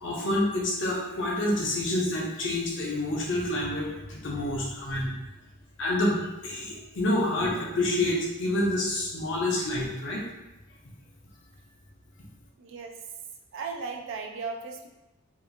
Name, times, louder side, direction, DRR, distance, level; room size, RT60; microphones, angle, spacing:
voice 1, 0.0-5.1 5.8-10.2, left 1 dB, 55° left, -3 dB, 0.7 m, -28 dB
voice 2, 12.6-13.0 13.5-14.9, right 4 dB, 60° right, 3 dB, 0.3 m, -36 dB
2.8 x 2.4 x 2.5 m, 0.98 s
head